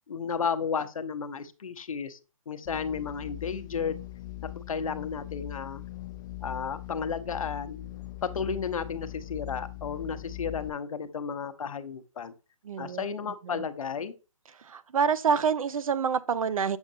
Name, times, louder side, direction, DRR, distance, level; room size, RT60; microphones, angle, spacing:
voice 1, 0.1-2.2 2.5-4.0 4.6-5.8 6.4-7.9 8.2-12.3 12.8-14.1, left 6 dB, 70° left, 0.8 m, -33 dB
sound 1, 2.6-10.7, left 17 dB, 35° left, 0.4 m, -41 dB
voice 2, 12.6-13.1 13.4-13.6 14.6-16.8, right 6 dB, 70° right, 0.5 m, -27 dB
7.1 x 5.2 x 2.6 m
hypercardioid pair, 145°, 18 cm